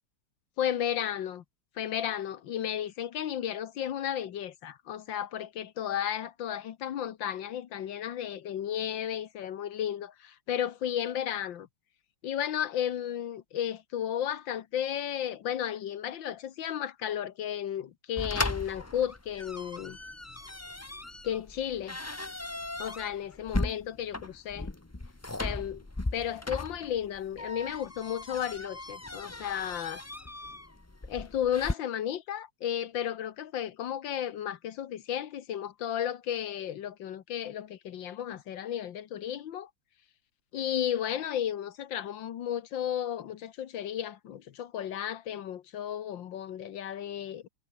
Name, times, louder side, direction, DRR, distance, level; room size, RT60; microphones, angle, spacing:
voice 1, 0.6-1.4 1.8-11.7 12.2-20.0 21.2-22.0 22.8-24.7 25.4-25.8 26.1-30.0 31.1-39.7 40.5-47.5, left 10 dB, 75° left, 1.8 m, -33 dB
sound 1, 18.2-31.7, left 2 dB, 15° left, 0.6 m, -37 dB
omnidirectional pair, 2.1 m